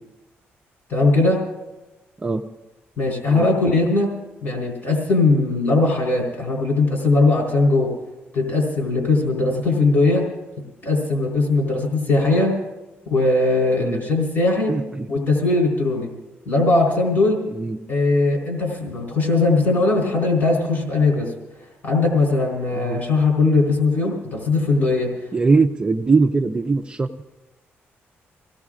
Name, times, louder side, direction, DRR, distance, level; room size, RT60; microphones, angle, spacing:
voice 1, 0.9-1.4 3.0-4.1 4.4-7.9 8.3-10.3 10.8-12.6 13.1-14.8 15.1-16.1 16.5-17.4 17.9-21.3 21.8-25.1, left 3 dB, 45° left, -1 dB, 3.8 m, -19 dB
voice 2, 14.7-15.1 17.5-17.8 22.8-23.0 25.3-27.2, right 4 dB, 20° right, 3 dB, 0.6 m, -21 dB
25.0 x 17.0 x 2.5 m, 1.1 s
cardioid pair, 125°, 4 cm